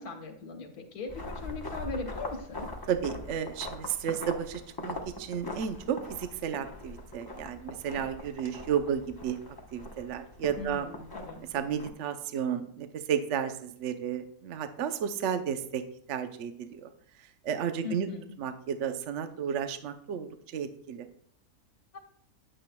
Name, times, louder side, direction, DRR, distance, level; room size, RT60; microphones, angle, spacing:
voice 1, 0.0-2.7 10.6-11.4 17.8-18.3 21.9-22.0, left 3 dB, 90° left, 5 dB, 1.8 m, -39 dB
sound 1, 1.1-11.9, left 2 dB, 20° left, 0.8 m, -42 dB
voice 2, 2.9-9.4 9.7-10.9 11.5-15.8 16.1-16.9 17.4-18.1 18.4-21.1, right 8 dB, 60° right, 9 dB, 0.9 m, -32 dB
9.8 x 8.8 x 2.3 m, 0.66 s
omnidirectional pair, 1.6 m